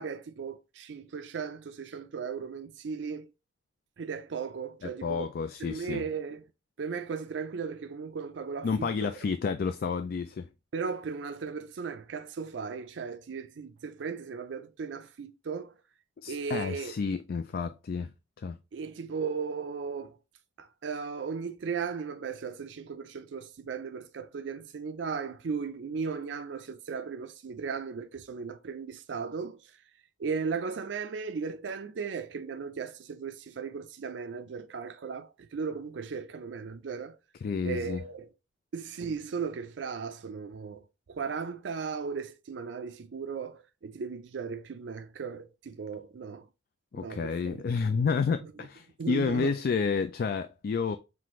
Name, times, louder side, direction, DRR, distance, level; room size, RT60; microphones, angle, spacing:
voice 1, 0.0-3.3 4.0-5.3 5.6-6.4 6.8-8.9 10.7-15.7 16.3-16.9 18.7-20.2 20.6-29.6 30.2-37.2 37.6-38.3 38.7-40.8 41.1-46.5 46.9-47.6 48.4-48.5 49.0-49.5, right 5 dB, 75° right, 0.4 m, -36 dB
voice 2, 4.8-6.0 8.6-10.5 16.2-18.1 18.4-18.6 37.4-38.0 46.9-51.0, left 5 dB, 55° left, 0.3 m, -30 dB
5.7 x 2.5 x 3.0 m
head